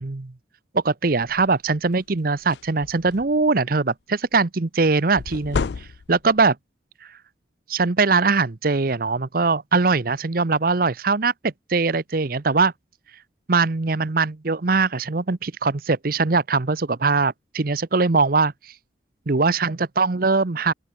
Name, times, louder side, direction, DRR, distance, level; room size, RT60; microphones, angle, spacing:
voice 1, 0.0-0.3 0.7-6.6 7.7-12.7 13.5-18.7 19.3-20.7, right 4 dB, 50° right, 0.8 m, -21 dB
sound 1, 1.2-1.5 2.0-2.1 2.4-3.5 5.2-6.4, left 5 dB, 65° left, 0.4 m, -31 dB
open air
head